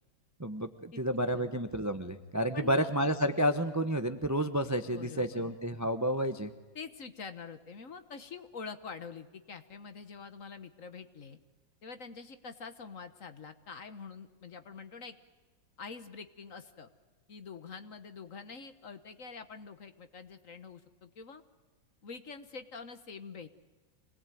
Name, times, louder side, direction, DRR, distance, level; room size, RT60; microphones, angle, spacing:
voice 1, 0.4-6.5, equal, 15° right, 9 dB, 0.6 m, -30 dB
voice 2, 2.5-2.9 4.9-5.6 6.7-11.4 11.8-15.2 15.8-16.9 17.3-21.4 22.0-23.5, left 5 dB, 50° left, 10 dB, 1.4 m, -46 dB
26.0 x 19.5 x 9.2 m, 1.3 s
omnidirectional pair, 2.0 m